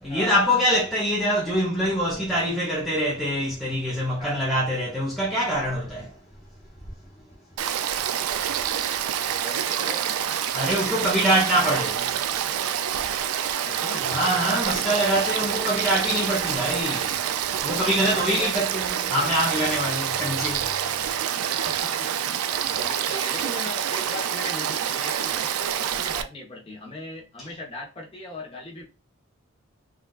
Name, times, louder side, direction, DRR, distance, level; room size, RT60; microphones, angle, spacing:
voice 1, 0.0-6.2 10.5-12.1 14.0-17.2 17.6-20.8, equal, ahead, 0.6 m, -24 dB
Frog / Stream, 7.6-26.2, right 9 dB, 90° right, 0.3 m, -27 dB
voice 2, 9.0-10.0 12.9-14.1 17.8-18.5 21.6-28.8, left 1 dB, 25° left, 0.9 m, -38 dB
3.7 x 2.4 x 2.3 m
head